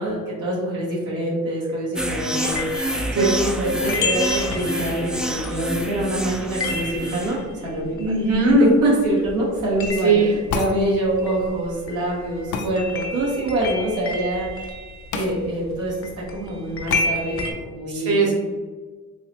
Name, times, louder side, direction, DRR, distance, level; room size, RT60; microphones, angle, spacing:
voice 1, 0.0-8.1 8.5-14.7 15.1-18.3, right 1 dB, 80° right, -5 dB, 1.1 m, -25 dB
sound 1, 2.0-7.4, equal, 5° right, 0.3 m, -28 dB
sound 2, 2.4-9.0 9.3-17.5, left 3 dB, 45° left, 0.7 m, -31 dB
voice 2, 8.0-8.7 10.0-10.3 17.9-18.3, right 3 dB, 50° right, -2 dB, 1.0 m, -18 dB
sound 3, 10.5-10.8 12.5-12.7 15.1-15.3 15.7-15.8 16.9-17.1, left 4 dB, 80° left, 0.5 m, -27 dB
3.8 x 2.9 x 2.8 m, 1.4 s
cardioid pair, 90°, 30 cm